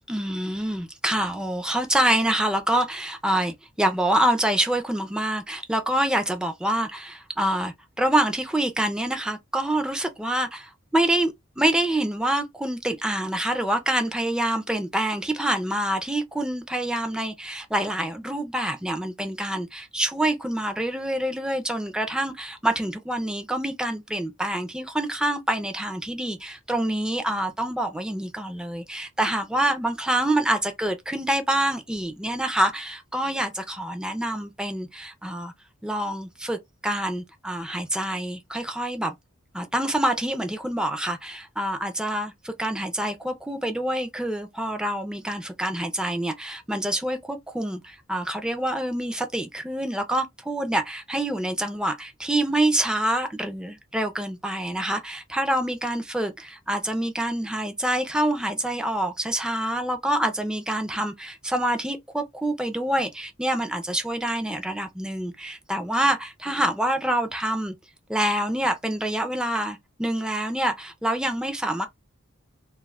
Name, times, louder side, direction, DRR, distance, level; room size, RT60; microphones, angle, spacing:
voice 1, 0.1-35.5 35.8-39.1 39.5-67.7 68.1-71.9, right 1 dB, 5° right, 0.4 m, -26 dB
2.3 x 2.1 x 3.2 m
head